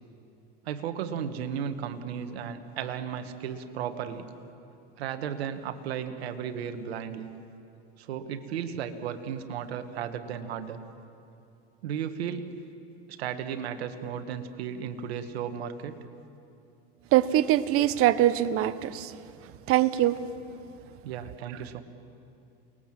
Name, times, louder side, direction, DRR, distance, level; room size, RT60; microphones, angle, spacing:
voice 1, 0.7-4.3 5.0-7.3 8.0-10.8 11.8-12.5 13.1-16.0 21.0-21.8, right 8 dB, 90° right, 8 dB, 1.9 m, -34 dB
voice 2, 17.1-19.1 19.7-20.2, right 13 dB, 45° right, 14 dB, 1.1 m, -23 dB
28.5 x 20.5 x 7.7 m, 2.6 s
supercardioid pair, 120°, 31 cm